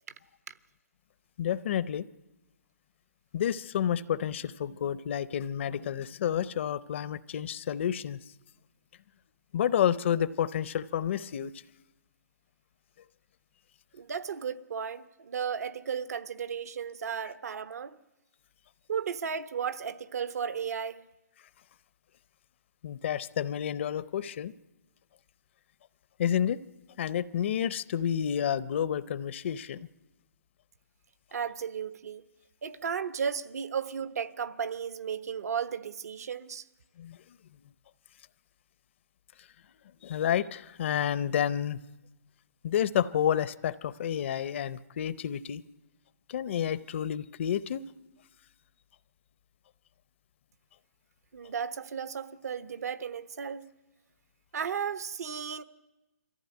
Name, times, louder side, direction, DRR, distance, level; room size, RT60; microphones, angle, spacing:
voice 1, 1.4-2.1 3.3-8.2 9.5-11.5 22.8-24.5 26.2-26.6 27.0-29.8 37.0-37.2 40.0-41.8 42.6-45.6 46.3-47.8, left 9 dB, 45° left, 0.6 m, -30 dB
voice 2, 13.9-18.0 18.9-21.0 31.3-32.2 32.6-36.6 51.3-53.6 54.5-55.6, right 7 dB, 70° right, 1.1 m, -34 dB
22.5 x 15.0 x 9.2 m
hypercardioid pair, 155°, 9 cm